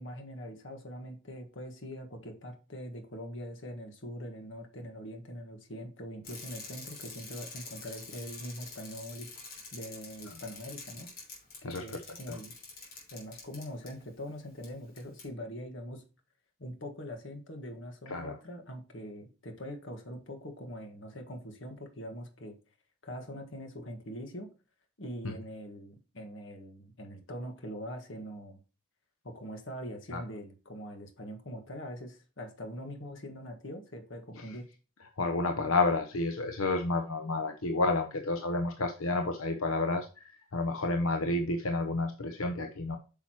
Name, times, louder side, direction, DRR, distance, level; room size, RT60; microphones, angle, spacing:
voice 1, 0.0-9.3 9.7-11.1 11.6-12.5 13.1-16.0 16.6-22.6 23.0-24.5 25.0-28.6 29.2-34.7, equal, 60° left, 5 dB, 1.6 m, -43 dB
Bicycle, 6.2-13.9 14.6-14.7 15.0-15.3, left 3 dB, 45° left, 3.1 m, -47 dB
voice 2, 11.6-12.0 12.3-12.4 18.1-18.4 30.1-30.2 34.4-34.6 35.2-43.0, left 2 dB, 80° left, 6 dB, 0.8 m, -30 dB
8.7 x 5.7 x 2.9 m, 0.33 s
head